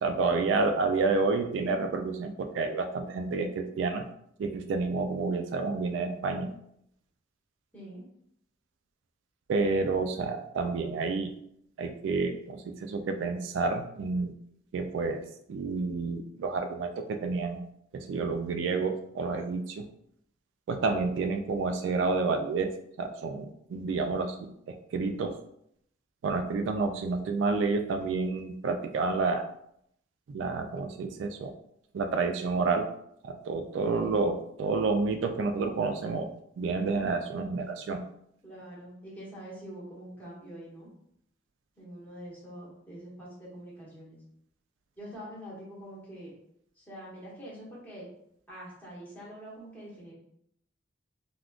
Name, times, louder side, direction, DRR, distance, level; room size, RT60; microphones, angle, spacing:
voice 1, 0.0-4.0 4.4-6.5 9.5-11.3 11.8-14.3 14.7-17.6 17.9-19.9 20.7-24.4 24.7-25.4 26.2-29.5 30.3-31.5 31.9-32.9 33.2-36.3 36.6-38.0, right 4 dB, 75° right, 6 dB, 0.3 m, -29 dB
voice 2, 7.7-8.0 33.9-34.2 38.4-40.9 41.8-44.2 45.0-46.3 46.8-48.1 48.5-50.1, equal, 10° left, -7 dB, 1.1 m, -45 dB
3.5 x 2.4 x 2.4 m, 0.72 s
head